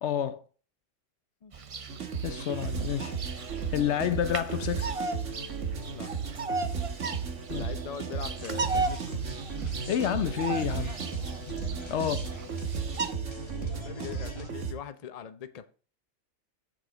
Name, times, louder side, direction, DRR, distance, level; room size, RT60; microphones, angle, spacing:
voice 1, 0.0-0.4 2.2-3.1 3.4-4.9 7.5-7.7 9.6-11.0 11.9-12.2, left 9 dB, 65° left, 0.9 m, -29 dB
Bird vocalization bird call bird song, 1.5-13.1, right 4 dB, 40° right, 0.5 m, -37 dB
sound 1, 1.9-14.7, right 6 dB, 70° right, 1.7 m, -35 dB
voice 2, 7.5-9.2 11.9-12.1 13.4-15.7, left 8 dB, 40° left, 0.6 m, -42 dB
Digital Donut Clip, 8.4-14.5, equal, 20° left, 1.6 m, -43 dB
11.5 x 7.5 x 3.9 m
omnidirectional pair, 1.3 m